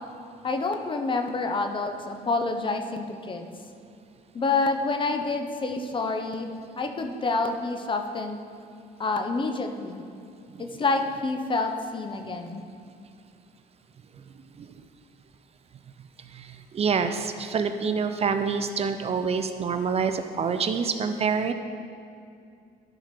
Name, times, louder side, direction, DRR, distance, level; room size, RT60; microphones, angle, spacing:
voice 1, 0.4-3.5 4.3-8.4 9.0-10.0 10.6-12.6, left 3 dB, 30° left, 6 dB, 0.8 m, -28 dB
voice 2, 16.3-21.5, right 5 dB, 40° right, 8 dB, 0.5 m, -27 dB
12.0 x 5.0 x 5.9 m, 2.4 s
cardioid pair, 110°, 17 cm